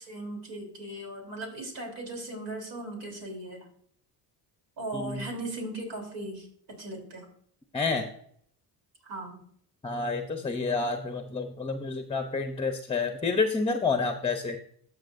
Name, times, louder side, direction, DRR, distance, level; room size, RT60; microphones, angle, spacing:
voice 1, 0.0-3.7 4.8-7.3 9.0-9.4, right 1 dB, 70° right, 1 dB, 3.5 m, -38 dB
voice 2, 7.7-8.1 9.8-14.6, left 4 dB, 15° left, 6 dB, 0.7 m, -29 dB
13.0 x 6.2 x 2.6 m, 0.64 s
supercardioid pair, 85°, 44 cm